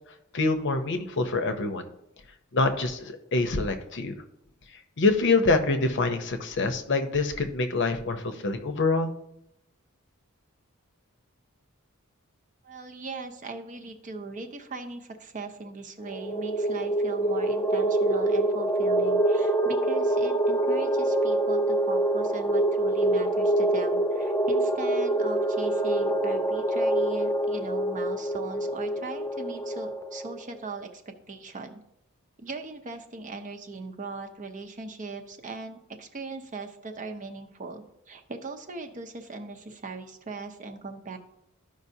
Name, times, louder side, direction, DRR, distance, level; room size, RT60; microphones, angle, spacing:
voice 1, 0.3-1.8 2.5-4.1 5.0-9.1, left 3 dB, 60° left, 7 dB, 0.7 m, -25 dB
voice 2, 12.6-31.8 32.4-41.2, right 3 dB, 35° right, 5 dB, 0.7 m, -39 dB
sound 1, 16.0-30.4, right 1 dB, 10° left, 0.4 m, -25 dB
13.5 x 5.2 x 2.7 m, 0.83 s
head